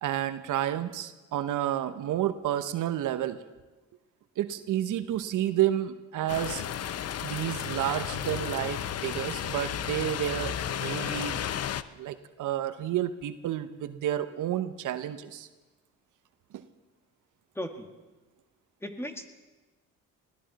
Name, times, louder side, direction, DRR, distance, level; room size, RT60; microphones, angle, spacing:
voice 1, 0.0-3.4 4.4-6.6 7.2-11.4 12.0-15.5 16.5-16.7, right 12 dB, 70° right, 11 dB, 0.9 m, -30 dB
sound 1, 6.3-11.8, left 10 dB, 50° left, 0.7 m, -33 dB
voice 2, 17.6-17.9 18.8-19.3, equal, 10° left, 6 dB, 1.8 m, -36 dB
21.0 x 16.0 x 4.1 m, 1.2 s
supercardioid pair, 70°, 32 cm